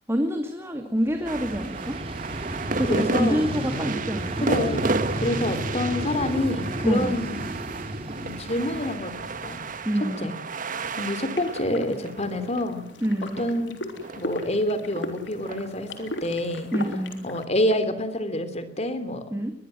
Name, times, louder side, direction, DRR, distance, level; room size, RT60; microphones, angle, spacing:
voice 1, 0.1-2.0 2.8-4.5 6.8-7.2 9.8-10.3 13.0-13.4 16.7-17.2 19.3-19.5, equal, 15° right, 4 dB, 2.3 m, -26 dB
Vehicle, 1.0-10.0, right 1 dB, 30° right, 2.4 m, -33 dB
sound 1, 1.3-14.5 15.0-16.9 17.6-17.8, right 3 dB, 50° right, 1.4 m, -33 dB
voice 2, 2.8-3.5 4.4-4.9 5.2-7.6 8.2-9.6 10.2-10.3 11.0-12.9 13.2-13.7 14.1-16.7 17.2-19.2, left 1 dB, 35° left, 11 dB, 3.2 m, -27 dB
sound 2, 11.3-17.5, left 1 dB, 80° left, 3.5 m, -37 dB
22.0 x 21.0 x 7.7 m, 0.72 s
head